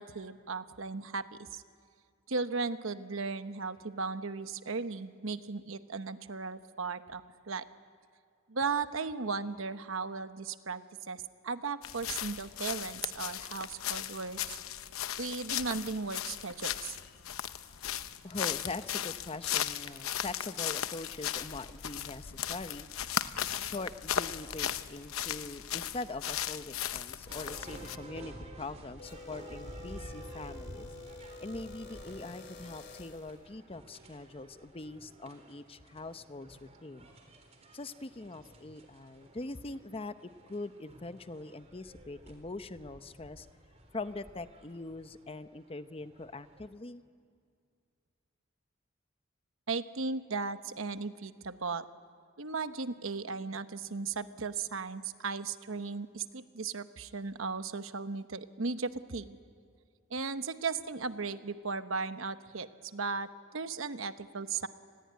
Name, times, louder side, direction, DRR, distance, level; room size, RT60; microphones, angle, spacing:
voice 1, 0.0-1.6 2.3-7.6 8.5-14.6 15.2-17.0 49.7-51.8 52.4-59.4 60.1-64.7, right 4 dB, 70° right, 10 dB, 1.1 m, -36 dB
sound 1, 11.8-28.0, left 10 dB, 85° left, 0.9 m, -37 dB
voice 2, 18.2-22.9 23.5-30.9 31.4-37.1 37.7-43.5 43.9-47.0, left 2 dB, 25° left, 11 dB, 0.8 m, -42 dB
sound 2, 27.3-46.7, right 1 dB, 30° right, 3.9 m, -52 dB
sound 3, 29.0-33.4, left 3 dB, 50° left, 2.5 m, -49 dB
29.5 x 21.0 x 9.5 m, 2.2 s
head